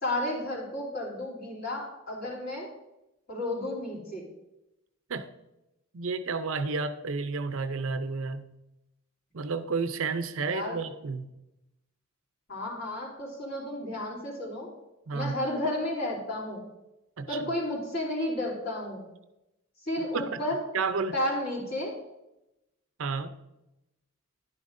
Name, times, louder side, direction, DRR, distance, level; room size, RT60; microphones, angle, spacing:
voice 1, 0.0-2.7 3.3-4.3 10.5-10.8 12.5-14.7 15.1-16.6 17.3-19.0 19.8-20.6 21.1-21.9, left 1 dB, 45° left, -3 dB, 3.2 m, -32 dB
voice 2, 5.9-8.5 9.3-11.3 15.1-15.4 17.2-17.4 20.0-20.4 20.7-21.1 23.0-23.3, right 4 dB, 65° right, 10 dB, 0.6 m, -31 dB
11.5 x 9.5 x 2.6 m, 0.93 s
head